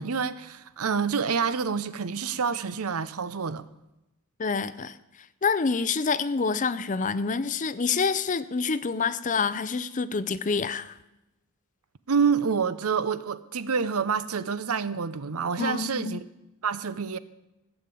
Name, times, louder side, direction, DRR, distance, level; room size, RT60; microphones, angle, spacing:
voice 1, 0.0-3.6 12.1-16.2 16.6-17.2, right 6 dB, 75° right, 0.7 m, -27 dB
voice 2, 4.4-5.0 5.4-11.0 15.6-16.2, left 5 dB, 35° left, 0.5 m, -27 dB
16.0 x 7.1 x 8.4 m
head